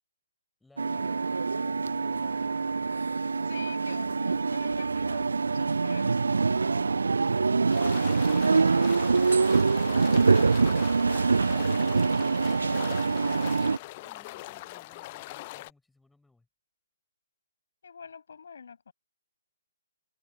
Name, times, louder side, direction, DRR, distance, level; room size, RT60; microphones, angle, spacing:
voice 1, 0.6-2.9 14.0-16.5, left 2 dB, 5° left, 4.8 m, -59 dB
sound 1, 0.8-13.8, right 4 dB, 65° right, 0.3 m, -25 dB
voice 2, 3.4-6.9 11.2-13.6 17.8-18.9, left 6 dB, 55° left, 6.1 m, -48 dB
sound 2, 7.7-15.7, left 20 dB, 30° left, 0.8 m, -42 dB
figure-of-eight pair, 130°, 0 cm